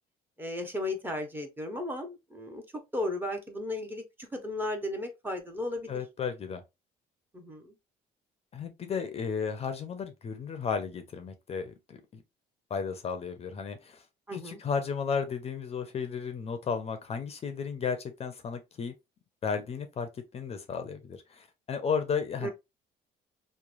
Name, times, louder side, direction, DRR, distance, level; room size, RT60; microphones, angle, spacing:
voice 1, 0.4-2.6 2.9-5.9 7.3-7.7 14.3-14.6 22.4-22.5, left 1 dB, 10° right, 0.7 m, -35 dB
voice 2, 5.9-6.6 8.5-12.2 12.7-14.0 14.3-18.9 19.4-22.5, left 6 dB, 35° left, 0.5 m, -34 dB
3.0 x 2.1 x 2.4 m
cardioid pair, 110°, 17 cm